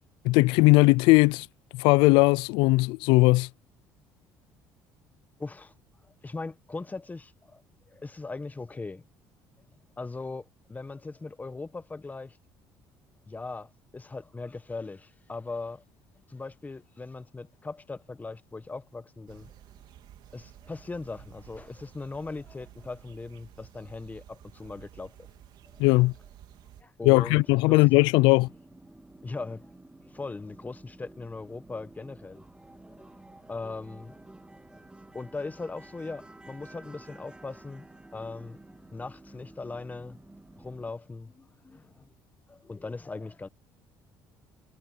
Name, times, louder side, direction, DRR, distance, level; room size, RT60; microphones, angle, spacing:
voice 1, 0.2-1.5 1.7-3.5 25.8-26.1 27.0-28.5, left 23 dB, 85° left, 0.4 m, -19 dB
voice 2, 5.4-5.7 6.2-7.6 7.9-9.0 10.0-12.4 13.3-15.8 16.2-19.5 20.3-25.2 25.7-25.8 26.8-27.8 29.2-29.7 30.0-32.4 33.0-33.1 33.5-34.2 34.7-34.8 35.1-37.9 38.1-38.6 38.9-40.2 40.6-42.1 42.5-43.5, left 3 dB, 20° left, 1.4 m, -39 dB
sound 1, 19.3-26.8, right 12 dB, 65° right, 3.4 m, -53 dB
sound 2, 27.2-40.9, right 2 dB, 10° right, 3.1 m, -51 dB
supercardioid pair, 80°, 8 cm